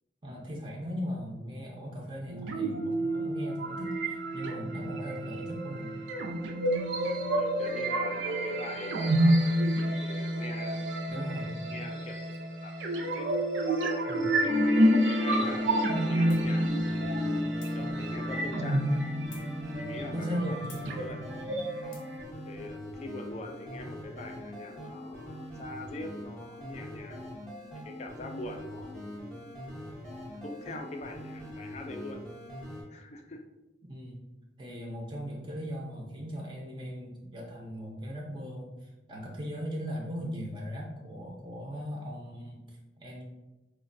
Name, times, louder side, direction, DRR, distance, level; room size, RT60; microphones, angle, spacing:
voice 1, 0.2-6.0 11.1-11.8 14.1-14.3 20.1-21.0 21.3-21.4 33.9-34.2 34.6-43.2, equal, 25° right, -2 dB, 0.5 m, -38 dB
sound 1, 2.3-22.2, right 1 dB, 80° right, 0.5 m, -29 dB
voice 2, 7.3-9.6 10.0-10.9 11.7-12.2 12.6-13.3 14.6-17.2 17.7-19.0 19.7-20.3 21.0-21.2 21.8-22.0 22.5-27.3 27.8-29.6 30.4-32.2 32.9-33.4, left 2 dB, 35° left, 4 dB, 0.3 m, -43 dB
sound 2, 15.3-32.8, left 1 dB, 5° left, 0.8 m, -43 dB
sound 3, 16.3-16.5 17.6-17.8 19.3-19.5 20.7-20.9 21.9-22.2, left 5 dB, 85° left, 0.7 m, -51 dB
4.4 x 2.2 x 2.5 m, 1.0 s
head